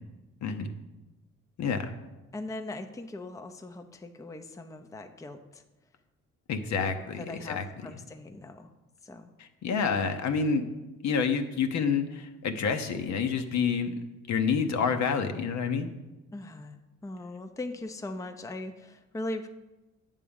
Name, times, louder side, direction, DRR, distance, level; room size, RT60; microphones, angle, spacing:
voice 1, 1.6-1.9 6.5-7.6 9.4-10.7 11.0-13.9 14.3-15.9, left 5 dB, 65° left, 7 dB, 0.8 m, -28 dB
voice 2, 2.3-5.6 6.8-8.7 9.0-9.3 16.3-16.8 17.0-19.5, left 2 dB, 10° left, 7 dB, 0.5 m, -40 dB
9.1 x 3.7 x 7.0 m, 1.1 s
cardioid pair, 90°, 30 cm